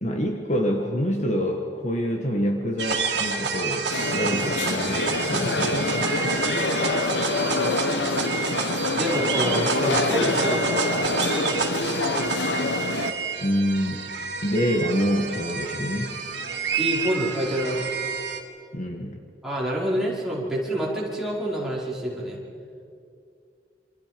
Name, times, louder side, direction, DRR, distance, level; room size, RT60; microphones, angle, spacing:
voice 1, 0.0-6.6 13.4-14.1 14.4-16.2 18.7-19.2, equal, 40° left, 2 dB, 1.7 m, -26 dB
sound 1, 2.8-18.4, right 5 dB, 70° right, 2.4 m, -29 dB
sound 2, 3.9-13.1, left 2 dB, 80° left, 1.3 m, -26 dB
voice 2, 8.9-10.9 16.7-17.9 19.4-22.4, equal, 5° right, -6 dB, 5.2 m, -27 dB
28.0 x 26.5 x 5.3 m, 2.5 s
head